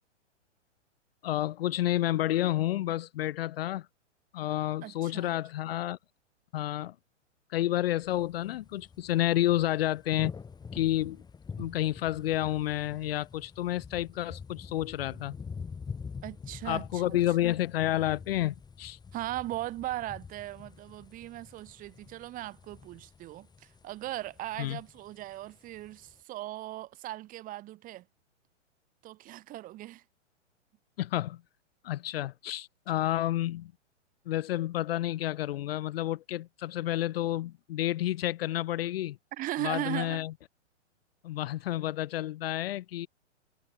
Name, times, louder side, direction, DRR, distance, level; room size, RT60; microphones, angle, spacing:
voice 1, 1.2-3.9 4.3-6.0 6.5-7.0 7.5-10.3 10.7-11.2 11.6-15.3 16.6-19.0 24.6-24.8 31.0-31.4 31.8-33.7 34.3-39.2 39.6-40.3 41.2-43.1, left 14 dB, 55° left, 0.6 m, -30 dB
voice 2, 4.8-5.4 16.2-17.5 19.1-28.0 29.0-30.0 39.3-40.2, right 16 dB, 25° right, 1.1 m, -38 dB
sound 1, 8.0-26.2, left 5 dB, 10° left, 2.5 m, -46 dB
hypercardioid pair, 120°, 37 cm